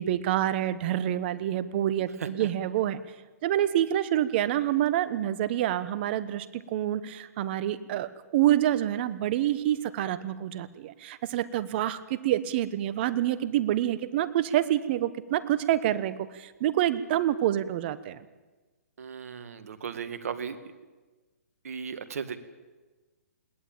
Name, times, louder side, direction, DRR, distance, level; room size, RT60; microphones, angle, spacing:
voice 1, 0.0-3.0 3.4-18.2, right 12 dB, 40° right, 15 dB, 1.2 m, -27 dB
voice 2, 2.2-2.5 19.0-20.6 21.6-22.4, right 6 dB, 65° right, 10 dB, 2.0 m, -36 dB
21.0 x 17.5 x 8.9 m, 1.2 s
hypercardioid pair, 140°, 8 cm